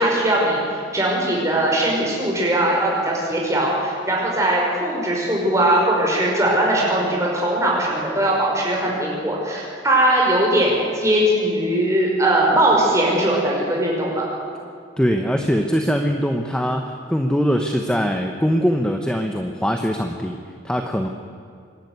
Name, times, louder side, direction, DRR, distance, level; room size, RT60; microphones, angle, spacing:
voice 1, 0.0-14.2, right 1 dB, 15° right, -3 dB, 5.3 m, -20 dB
voice 2, 15.0-20.4 20.6-21.1, equal, 5° left, 4 dB, 0.9 m, -22 dB
25.5 x 11.5 x 9.6 m, 2.4 s
head